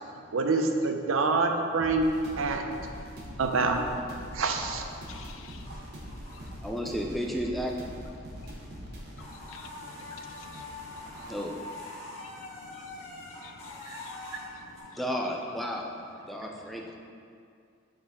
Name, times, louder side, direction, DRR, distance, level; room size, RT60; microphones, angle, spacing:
voice 1, 0.3-2.1 2.4-2.6 3.4-3.8 4.3-4.8 13.9-14.0, right 3 dB, 85° right, 4 dB, 0.6 m, -26 dB
sound 1, 1.8-11.4, equal, 50° right, 0.9 m, -44 dB
voice 2, 3.0-3.3 5.1-5.8 6.1-6.4 8.2-11.3 12.0-15.0, left 5 dB, 75° left, 7 dB, 0.4 m, -51 dB
sound 2, 5.1-6.8 7.1-8.0 8.3-8.5 8.7-14.8, left 2 dB, 30° left, 1.5 m, -44 dB
voice 3, 6.6-7.8 11.3-11.5 15.0-15.9 16.3-16.8, equal, ahead, 0 dB, 0.4 m, -32 dB
7.2 x 4.1 x 3.6 m, 2.4 s
head